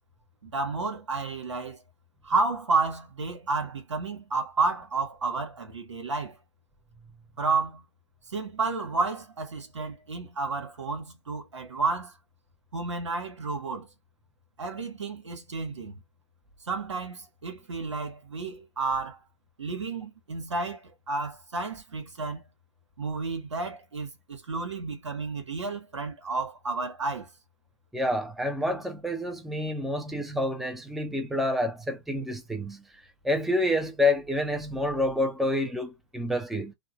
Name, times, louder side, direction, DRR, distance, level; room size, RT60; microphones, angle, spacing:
voice 1, 0.4-1.8 2.2-6.4 7.4-7.8 8.3-12.1 12.7-13.9 14.6-16.0 16.7-19.2 19.6-22.4 23.0-27.3, right 3 dB, 90° right, 1.1 m, -31 dB
voice 2, 27.9-32.8 33.2-36.7, left 1 dB, ahead, 0.6 m, -28 dB
3.5 x 2.2 x 2.5 m
hypercardioid pair, 115°, 15 cm